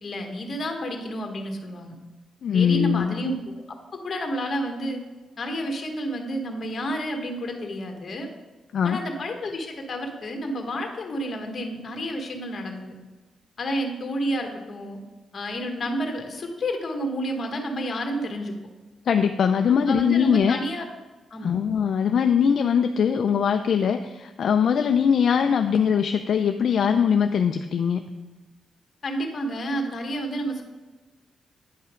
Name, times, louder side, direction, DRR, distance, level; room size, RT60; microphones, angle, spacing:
voice 1, 0.0-2.0 2.5-3.6 4.0-5.0 5.4-8.3 8.8-13.0 13.6-15.0 15.3-18.5 19.7-20.9 21.3-21.5 29.0-30.6, equal, 40° left, 3 dB, 1.4 m, -30 dB
voice 2, 2.4-3.2 8.7-9.0 19.1-20.6 21.4-28.0, left 7 dB, 60° left, 6 dB, 0.4 m, -21 dB
9.5 x 5.6 x 5.0 m, 1.2 s
cardioid pair, 130°, 0 cm